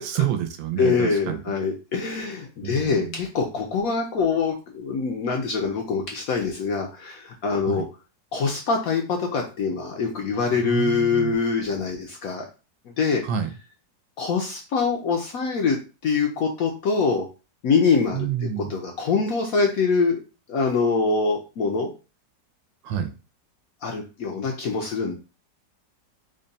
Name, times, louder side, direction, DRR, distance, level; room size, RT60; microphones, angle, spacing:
voice 1, 0.0-1.4 2.6-3.2 7.6-7.8 10.6-11.3 13.2-13.5 18.1-18.8 22.8-23.1, right 9 dB, 85° right, 7 dB, 1.3 m, -28 dB
voice 2, 0.8-7.8 8.3-12.4 12.9-13.2 14.2-15.8 16.0-17.3 17.6-18.3 18.6-20.2 20.5-21.9 23.8-25.2, left 5 dB, 70° left, 2 dB, 0.9 m, -24 dB
3.7 x 2.2 x 3.9 m, 0.32 s
omnidirectional pair, 2.0 m